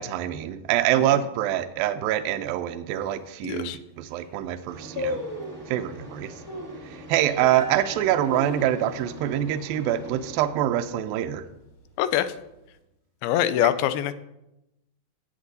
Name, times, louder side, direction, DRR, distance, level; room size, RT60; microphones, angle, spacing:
voice 1, 0.0-5.2 5.7-6.3 6.9-11.5, right 12 dB, 80° right, 8 dB, 2.2 m, -25 dB
sound 1, 2.9-3.0 3.6-3.7 4.0-4.3 5.0-5.7 6.5-6.9 7.4-7.5 8.0-9.1 9.4-9.5 9.9-10.2 10.6-11.0 11.6-12.4 12.6-12.7, left 2 dB, 35° left, 3.5 m, -34 dB
voice 2, 3.4-3.8 12.0-12.3 13.2-14.1, left 11 dB, 85° left, 13 dB, 2.4 m, -24 dB
sound 2, 4.7-10.5, right 1 dB, 50° right, 0.6 m, -44 dB
sound 3, 7.5-10.7 11.5-11.6, left 2 dB, 65° left, 1.9 m, -48 dB
17.5 x 8.4 x 2.7 m, 0.90 s
omnidirectional pair, 4.4 m